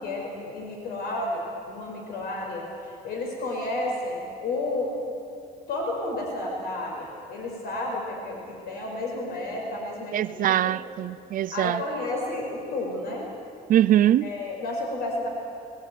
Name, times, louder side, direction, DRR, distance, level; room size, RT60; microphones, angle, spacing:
voice 1, 0.0-4.9 5.7-10.8 11.5-13.3 14.2-15.3, left 2 dB, 65° left, 5.2 m, -31 dB
voice 2, 10.1-11.8 13.7-14.3, right 12 dB, 55° right, 0.5 m, -22 dB
20.5 x 19.5 x 9.3 m
cardioid pair, 110°, 17 cm